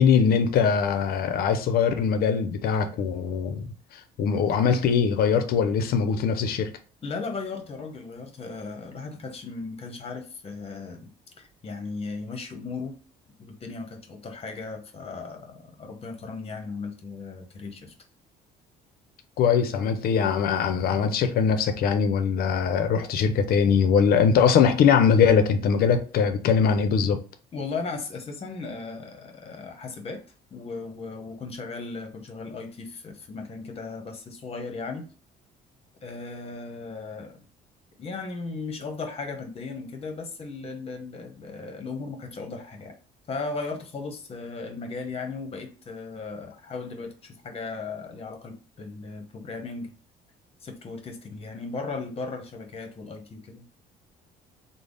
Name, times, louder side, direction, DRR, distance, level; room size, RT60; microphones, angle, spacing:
voice 1, 0.0-6.7 19.4-27.2, left 6 dB, 60° left, 0.5 m, -22 dB
voice 2, 7.0-11.1 11.4-13.0 13.4-17.9 27.5-30.2 30.5-35.1 36.0-37.4 38.0-42.9 43.3-49.9 50.6-53.6, left 4 dB, 35° left, 0.8 m, -36 dB
3.3 x 2.0 x 3.8 m
cardioid pair, 110°, 17 cm